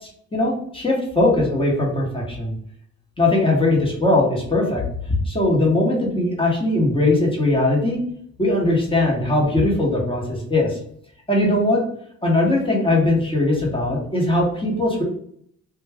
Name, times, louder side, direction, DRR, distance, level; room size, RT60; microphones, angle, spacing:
voice 1, 0.0-2.6 3.2-8.0 8.4-10.8 11.3-11.8 12.2-15.0, left 2 dB, 15° left, -2 dB, 1.0 m, -20 dB
2.3 x 2.2 x 3.4 m, 0.65 s
cardioid pair, 90°, 30 cm